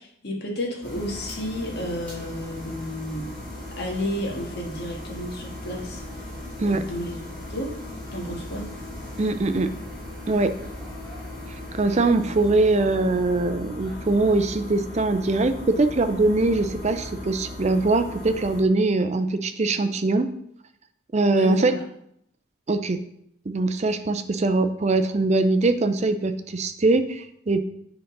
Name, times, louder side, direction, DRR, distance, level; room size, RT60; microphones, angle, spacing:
voice 1, 0.0-3.3 3.8-6.0 6.6-7.2 7.5-7.7 8.1-8.7 21.3-21.8, equal, 50° left, 0 dB, 1.6 m, -31 dB
sound 1, 0.8-18.6, left 1 dB, 5° left, 2.8 m, -37 dB
voice 2, 9.2-9.7 10.3-10.5 11.7-20.3 21.1-21.7 22.7-23.0 23.5-27.6, right 2 dB, 30° right, 9 dB, 0.5 m, -22 dB
8.1 x 3.9 x 5.3 m, 0.73 s
head